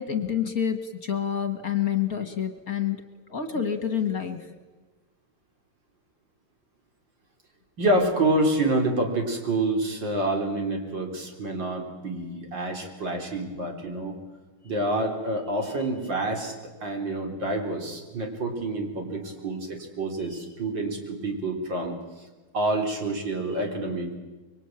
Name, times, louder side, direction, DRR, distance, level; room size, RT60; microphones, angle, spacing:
voice 1, 0.0-3.0 3.3-4.5, left 8 dB, 45° left, 8 dB, 2.0 m, -28 dB
voice 2, 7.8-14.1 14.6-16.5 16.8-22.3 22.5-24.1, right 2 dB, 60° right, 3 dB, 4.5 m, -27 dB
25.5 x 23.5 x 9.1 m, 1.3 s
omnidirectional pair, 2.3 m